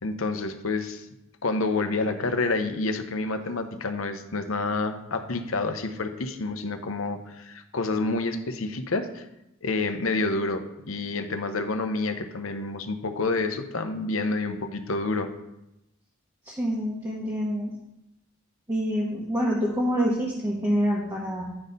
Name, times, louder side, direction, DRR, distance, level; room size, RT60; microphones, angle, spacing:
voice 1, 0.0-1.0 1.4-9.3 9.6-15.3, left 3 dB, 70° left, 8 dB, 0.8 m, -28 dB
voice 2, 16.4-17.7 18.7-21.4, equal, 15° right, -5 dB, 1.2 m, -26 dB
9.8 x 4.2 x 5.2 m, 0.86 s
head